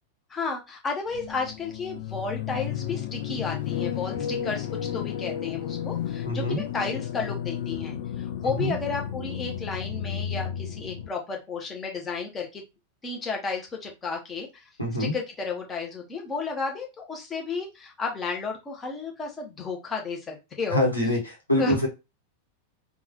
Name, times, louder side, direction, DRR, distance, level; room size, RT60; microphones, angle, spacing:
voice 1, 0.3-4.7 4.9-12.6 13.0-14.6 15.0-20.8 21.6-21.9, left 4 dB, 20° left, 1 dB, 0.9 m, -32 dB
sound 1, 1.1-11.1, left 9 dB, 55° left, 0.4 m, -33 dB
voice 2, 6.2-6.6 8.4-8.7 14.8-15.1 20.7-21.9, left 1 dB, 85° left, 0 dB, 1.1 m, -25 dB
3.7 x 2.4 x 2.9 m, 0.25 s
figure-of-eight pair, 90°, 0 cm